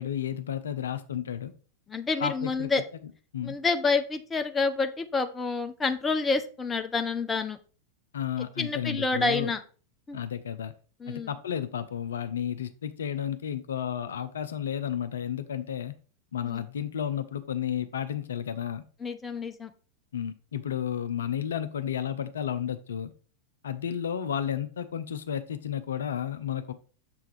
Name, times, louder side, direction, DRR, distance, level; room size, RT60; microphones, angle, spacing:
voice 1, 0.0-1.5 2.2-2.8 3.3-3.6 8.1-9.5 10.1-10.7 11.1-15.9 16.3-18.8 20.1-23.1 23.6-26.7, left 9 dB, 65° left, 10 dB, 0.5 m, -32 dB
voice 2, 1.9-2.8 3.4-7.6 8.6-9.6 10.1-10.2 11.0-11.3 16.4-16.6 19.0-19.7, left 4 dB, 15° left, 8 dB, 0.6 m, -28 dB
6.8 x 3.5 x 4.8 m, 0.38 s
figure-of-eight pair, 90°, 0 cm